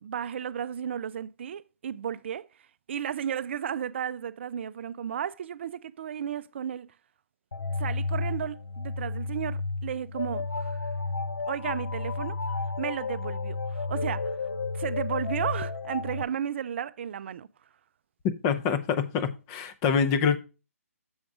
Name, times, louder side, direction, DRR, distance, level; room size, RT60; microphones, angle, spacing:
voice 1, 0.0-2.5 2.9-6.9 7.8-10.9 11.5-14.4 14.7-17.5, right 9 dB, 50° right, 0.4 m, -34 dB
sound 1, 7.5-16.2, left 3 dB, 85° left, 0.7 m, -32 dB
voice 2, 18.4-20.4, left 6 dB, 25° left, 0.7 m, -25 dB
7.0 x 5.2 x 4.8 m
hypercardioid pair, 145°, 8 cm